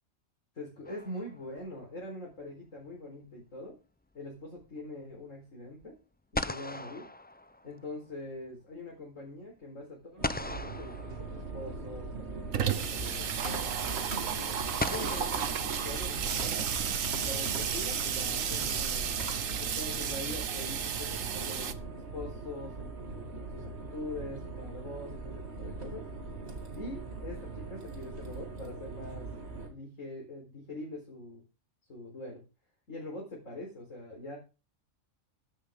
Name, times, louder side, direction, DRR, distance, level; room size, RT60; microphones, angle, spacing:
voice 1, 0.5-3.8 4.1-6.0 6.3-7.1 7.6-14.6 14.9-16.7 17.2-19.2 19.6-26.1 26.8-29.3 29.7-31.4 31.9-32.4 32.9-34.4, left 1 dB, 80° left, -1 dB, 4.7 m, -43 dB
sound 1, 0.9-1.7 5.8-5.9 6.3-8.1 10.2-11.8 13.2-13.3 14.8-16.4, left 2 dB, 15° left, 0.4 m, -38 dB
sound 2, 10.2-29.7, right 3 dB, 55° right, 2.6 m, -40 dB
Water tap faucet / Sink (filling or washing), 11.1-11.2 11.5-11.6 11.8-21.7, right 8 dB, 85° right, 1.4 m, -33 dB
14.5 x 11.5 x 3.7 m, 0.32 s
omnidirectional pair, 1.3 m